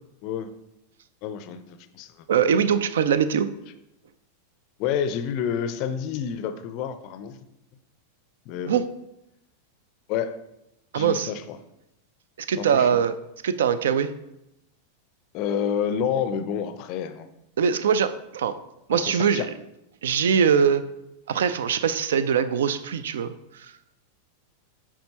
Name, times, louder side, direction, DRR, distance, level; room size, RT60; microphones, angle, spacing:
voice 1, 1.2-2.3 4.8-7.4 8.5-8.8 10.1-10.4 10.9-11.6 12.6-12.9 15.3-17.3 18.9-19.5, left 8 dB, 40° left, 11 dB, 0.4 m, -29 dB
voice 2, 2.3-3.5 8.7-8.9 10.9-11.3 12.5-13.1 13.4-14.1 17.6-18.6 18.9-19.5 20.0-20.8 21.3-23.7, right 7 dB, 60° right, 13 dB, 0.4 m, -22 dB
9.4 x 3.6 x 2.9 m, 0.86 s
figure-of-eight pair, 90°, 0 cm